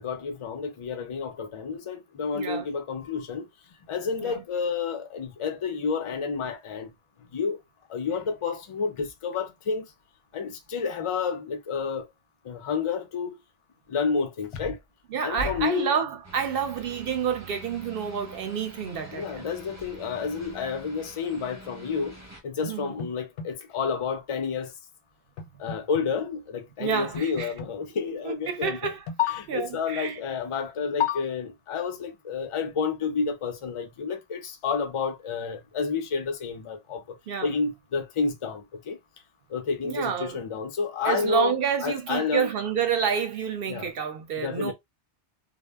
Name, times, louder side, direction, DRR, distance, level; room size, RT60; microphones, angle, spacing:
voice 1, 0.0-3.5 3.9-6.9 7.2-7.6 7.9-9.9 10.3-12.1 12.4-13.4 13.9-14.8 15.2-16.0 19.1-24.7 25.6-28.9 29.2-39.0 39.5-42.5 43.7-43.9 44.4-44.7, left 5 dB, 55° left, 0.3 m, -30 dB
voice 2, 2.3-2.7 4.2-4.3 15.1-19.5 22.7-22.9 26.8-27.5 28.2-29.0 29.5-30.2 37.3-37.5 39.8-40.4 41.0-44.7, right 7 dB, 65° right, 0.7 m, -29 dB
sound 1, 16.2-22.4, right 2 dB, 20° right, 0.6 m, -46 dB
sound 2, 22.6-23.5 25.4-26.0 27.1-27.7 28.6-29.2, left 2 dB, 90° left, 0.9 m, -38 dB
2.0 x 2.0 x 3.3 m
omnidirectional pair, 1.2 m